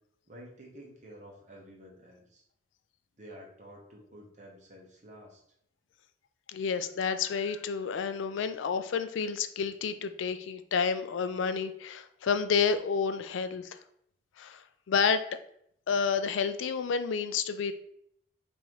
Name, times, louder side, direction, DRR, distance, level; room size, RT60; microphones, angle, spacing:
voice 1, 0.3-2.4 3.2-5.4, equal, 40° right, -1 dB, 1.0 m, -50 dB
voice 2, 6.5-13.8 14.4-14.6 14.9-15.3 15.9-17.7, left 6 dB, 80° left, 11 dB, 0.4 m, -30 dB
5.5 x 2.7 x 3.0 m, 0.71 s
head